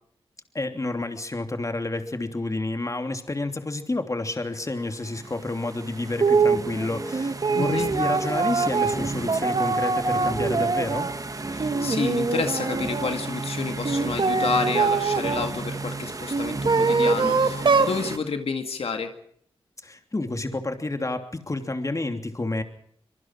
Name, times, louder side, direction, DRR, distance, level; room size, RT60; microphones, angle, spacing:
voice 1, 0.5-11.1 19.8-22.6, left 2 dB, 35° left, 6 dB, 3.0 m, -30 dB
sound 1, 4.7-18.2, right 3 dB, 35° right, 1.6 m, -34 dB
sound 2, 6.2-6.6 7.1-11.2 11.6-13.1 13.8-15.5 16.3-18.0, right 4 dB, 55° right, 1.7 m, -23 dB
voice 2, 7.5-7.9 11.5-19.1, left 5 dB, 80° left, 6 dB, 2.1 m, -30 dB
25.5 x 23.0 x 4.7 m, 0.65 s
wide cardioid pair, 70°, 10 cm